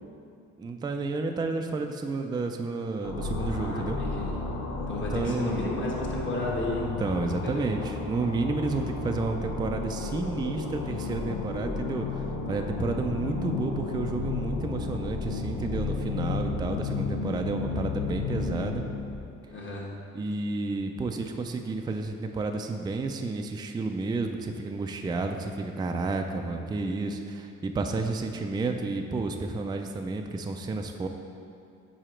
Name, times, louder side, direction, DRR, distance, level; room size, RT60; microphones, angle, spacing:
voice 1, 0.6-4.0 5.0-5.7 6.8-18.8 20.1-31.1, right 3 dB, 15° right, 5 dB, 0.3 m, -31 dB
sound 1, 3.0-19.2, left 4 dB, 90° left, 0.8 m, -33 dB
voice 2, 3.4-4.3 4.9-6.9 7.4-7.8 19.5-19.9, left 1 dB, 40° left, -2 dB, 1.2 m, -33 dB
4.9 x 4.9 x 4.4 m, 2.5 s
cardioid pair, 90°, 30 cm